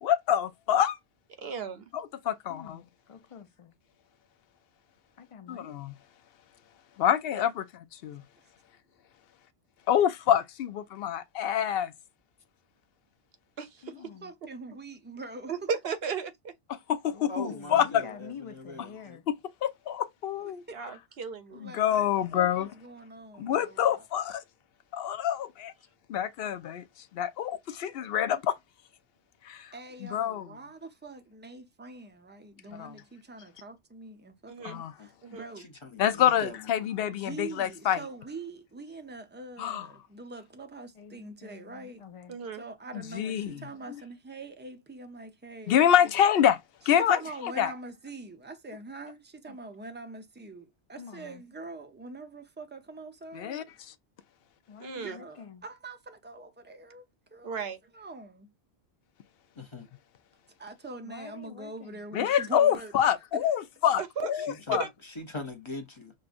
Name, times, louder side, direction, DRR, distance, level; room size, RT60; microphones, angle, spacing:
voice 1, 0.0-1.0 1.9-2.8 5.5-6.0 7.0-7.6 8.0-8.2 9.9-11.9 16.7-18.0 19.3-19.4 19.6-20.6 21.6-22.7 23.4-24.4 24.9-25.7 26.1-26.8 27.1-28.6 29.4-29.7 30.0-30.5 32.7-33.0 34.6-34.9 36.0-38.0 39.6-39.9 42.9-44.0 45.7-46.6 46.9-47.7 53.3-53.6 62.1-64.8, left 10 dB, 65° left, 0.8 m, -26 dB
voice 2, 1.4-1.9 13.6-13.9 15.5-16.5 20.7-21.7 34.5-34.7 35.2-35.5 42.3-42.6 54.8-55.2 57.4-57.8 64.0-64.3 64.7-64.9, right 6 dB, 65° right, 0.9 m, -35 dB
voice 3, 2.5-3.7 5.2-5.7 13.8-14.3 17.1-19.3 28.3-28.4 40.9-42.4 49.5-49.6 51.0-51.4 54.7-55.6 61.0-62.0 64.4-64.5, left 7 dB, 45° left, 0.4 m, -47 dB
voice 4, 13.9-15.7 17.4-17.5 20.4-20.9 21.5-22.0 22.3-24.1 29.7-35.7 37.1-42.0 42.5-45.8 46.9-53.7 55.0-58.5 60.6-63.1, right 3 dB, 15° right, 0.5 m, -44 dB
voice 5, 17.3-19.2 35.0-35.1 35.6-37.1 59.6-59.9 64.5-66.1, left 2 dB, 30° left, 0.8 m, -42 dB
6.4 x 2.3 x 2.5 m
omnidirectional pair, 1.1 m